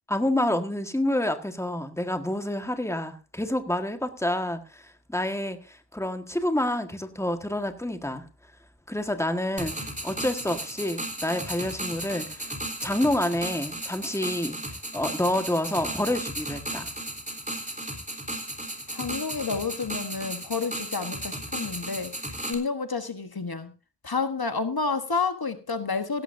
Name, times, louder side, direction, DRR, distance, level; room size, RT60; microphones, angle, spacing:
voice 1, 0.1-8.2 8.9-9.8 10.0-12.5 12.8-16.9, left 1 dB, 5° left, 7 dB, 1.6 m, -28 dB
sound 1, 9.6-22.5, right 1 dB, 20° right, 3.5 m, -35 dB
voice 2, 18.9-23.7 24.0-26.2, left 4 dB, 60° left, 9 dB, 1.3 m, -30 dB
16.5 x 13.5 x 2.7 m, 0.34 s
wide cardioid pair, 50°, 42 cm